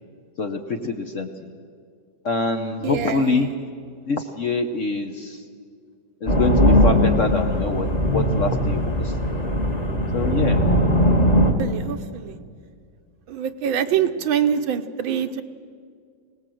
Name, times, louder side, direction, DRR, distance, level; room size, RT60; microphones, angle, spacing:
voice 1, 0.4-1.6 2.2-3.5 4.1-5.4 6.2-9.1 10.1-10.6 14.0-14.1, left 3 dB, 50° left, 5 dB, 1.1 m, -25 dB
voice 2, 2.8-3.3 11.6-12.4 13.3-15.4, right 8 dB, 90° right, 8 dB, 1.7 m, -24 dB
sound 1, 6.3-11.5, equal, 20° left, 1.6 m, -19 dB
25.0 x 18.5 x 7.7 m, 2.1 s
omnidirectional pair, 2.1 m